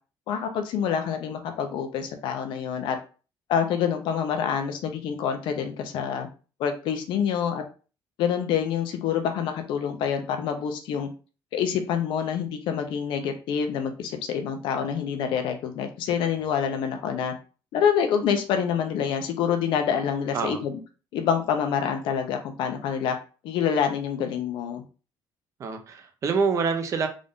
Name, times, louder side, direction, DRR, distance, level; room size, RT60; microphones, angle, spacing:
voice 1, 0.3-3.0 3.5-6.3 6.6-7.6 8.2-11.1 11.5-17.3 17.7-20.8 21.1-23.2 23.4-24.8, left 7 dB, 80° left, 0.8 m, -26 dB
voice 2, 20.3-20.6 25.6-27.1, right 5 dB, 40° right, 0.6 m, -26 dB
3.7 x 2.6 x 3.6 m
cardioid pair, 155°, 8 cm